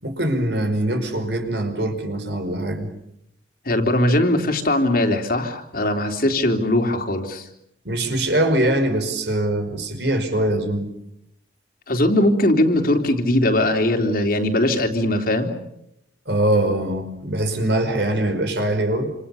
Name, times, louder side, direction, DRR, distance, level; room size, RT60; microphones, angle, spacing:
voice 1, 0.0-2.9 7.9-10.9 16.3-19.1, right 1 dB, 60° right, 7 dB, 5.3 m, -22 dB
voice 2, 3.6-7.5 11.9-15.5, left 1 dB, 50° left, 4 dB, 3.4 m, -20 dB
28.0 x 27.5 x 7.1 m, 0.79 s
head